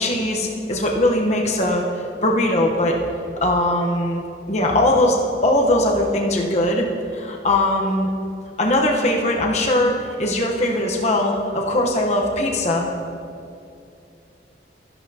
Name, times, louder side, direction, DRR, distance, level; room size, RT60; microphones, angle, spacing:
voice 1, 0.0-1.8 2.2-3.0 3.4-8.1 8.6-12.9, left 1 dB, 40° left, 0 dB, 1.0 m, -20 dB
13.0 x 11.5 x 2.8 m, 2.6 s
head